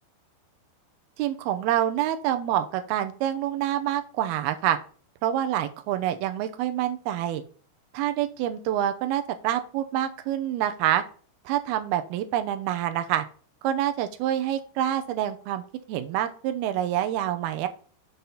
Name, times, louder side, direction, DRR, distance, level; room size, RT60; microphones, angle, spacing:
voice 1, 1.2-4.8 5.2-7.4 7.9-11.0 11.5-13.3 13.6-15.6 15.9-17.7, right 11 dB, 80° right, 8 dB, 2.3 m, -27 dB
7.2 x 5.9 x 4.0 m, 0.40 s
omnidirectional pair, 5.3 m